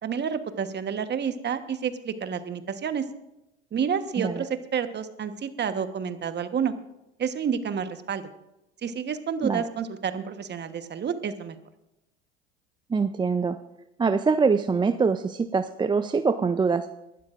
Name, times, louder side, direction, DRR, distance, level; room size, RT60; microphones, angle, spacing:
voice 1, 0.0-3.1 3.7-6.7 7.2-8.2 8.8-11.6, right 7 dB, 30° right, 10 dB, 1.2 m, -29 dB
voice 2, 12.9-13.6 14.0-16.9, right 5 dB, 15° right, 10 dB, 0.5 m, -24 dB
24.0 x 12.0 x 2.5 m, 0.91 s
hypercardioid pair, 75°, 32 cm